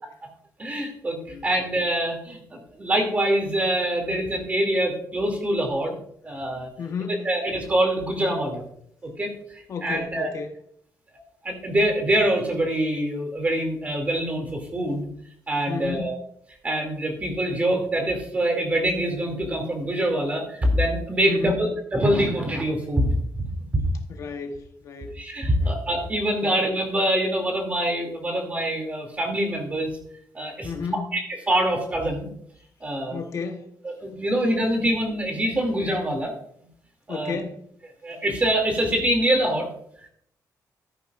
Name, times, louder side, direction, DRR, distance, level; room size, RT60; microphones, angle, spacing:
voice 1, 0.6-6.0 6.2-6.7 7.2-8.6 9.0-9.3 9.8-10.3 11.4-15.1 15.5-16.2 16.6-23.5 25.2-29.9 30.3-30.7 31.1-31.2 31.5-32.3 32.8-33.2 34.0-36.3 37.1-37.4 38.0-39.7, right 1 dB, 20° right, 2.5 m, -24 dB
voice 2, 6.8-7.3 9.7-10.5 15.7-16.1 21.3-21.7 23.0-23.2 24.1-25.2 25.6-25.8 26.4-26.6 30.6-31.1 33.1-33.7 37.1-37.6, left 5 dB, 50° left, 1.0 m, -33 dB
13.5 x 10.5 x 2.4 m
wide cardioid pair, 175°, 7 cm